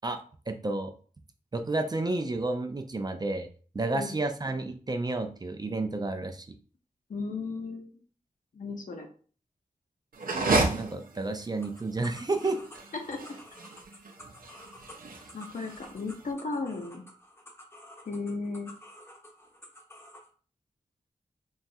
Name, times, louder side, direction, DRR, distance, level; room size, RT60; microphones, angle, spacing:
voice 1, 0.0-0.9 1.5-3.5 3.7-6.5 10.7-12.6, right 2 dB, 30° right, 6 dB, 0.4 m, -31 dB
voice 2, 7.1-7.9 8.5-9.1 13.1-13.2 15.3-17.0 18.1-18.7, left 3 dB, 65° left, 3 dB, 0.7 m, -35 dB
sound 1, 10.1-16.3, right 3 dB, 80° right, 0.5 m, -32 dB
sound 2, 11.6-20.3, left 1 dB, 15° left, 0.6 m, -51 dB
3.0 x 2.3 x 2.7 m, 0.41 s
wide cardioid pair, 70°, 15 cm